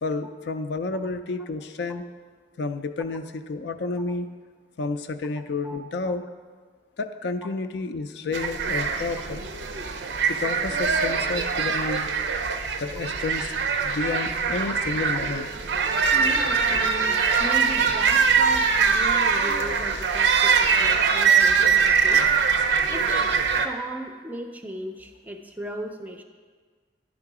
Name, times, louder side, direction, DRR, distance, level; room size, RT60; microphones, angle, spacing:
voice 1, 0.0-2.1 2.6-4.3 4.8-6.2 7.0-9.5 10.3-12.1 12.8-13.5 13.8-15.5, left 3 dB, 65° left, 8 dB, 0.4 m, -30 dB
sound 1, 8.3-23.7, right 6 dB, 85° right, 0.6 m, -22 dB
voice 2, 16.1-22.2 22.9-26.2, right 1 dB, 10° right, 5 dB, 0.4 m, -37 dB
11.0 x 3.7 x 4.8 m, 1.5 s
head